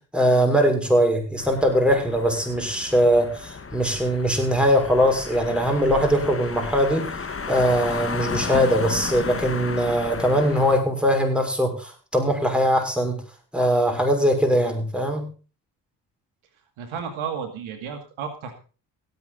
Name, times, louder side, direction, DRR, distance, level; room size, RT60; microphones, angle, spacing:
voice 1, 0.1-7.1 7.5-13.2 13.5-15.3, equal, ahead, 3 dB, 6.1 m, -21 dB
sound 1, 1.4-10.8, left 5 dB, 30° left, 1.6 m, -33 dB
voice 2, 16.8-18.5, right 6 dB, 75° right, 6 dB, 2.3 m, -32 dB
17.0 x 8.9 x 4.0 m, 0.35 s
supercardioid pair, 50°, 48 cm